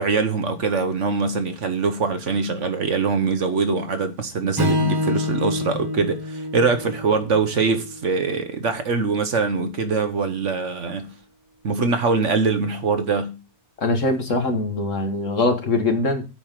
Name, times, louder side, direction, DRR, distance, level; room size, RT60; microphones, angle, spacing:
voice 1, 0.0-11.1 11.6-13.4, right 4 dB, 55° right, 1.3 m, -23 dB
Strum, 4.6-8.9, left 2 dB, 15° right, 1.0 m, -27 dB
voice 2, 13.8-16.3, left 2 dB, 55° left, 1.8 m, -22 dB
9.0 x 4.7 x 7.4 m
omnidirectional pair, 1.6 m